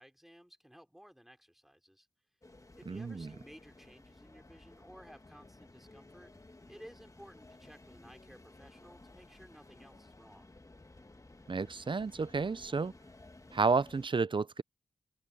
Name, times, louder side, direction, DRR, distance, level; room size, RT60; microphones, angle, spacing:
voice 1, 0.0-2.1 2.7-6.3 6.7-10.5, equal, ahead, 3.3 m, -56 dB
sound 1, 2.4-14.1, left 2 dB, 25° left, 1.4 m, -56 dB
voice 2, 2.9-3.3 11.5-12.9 13.5-14.6, right 4 dB, 40° right, 0.6 m, -31 dB
open air
cardioid pair, 55°, 13 cm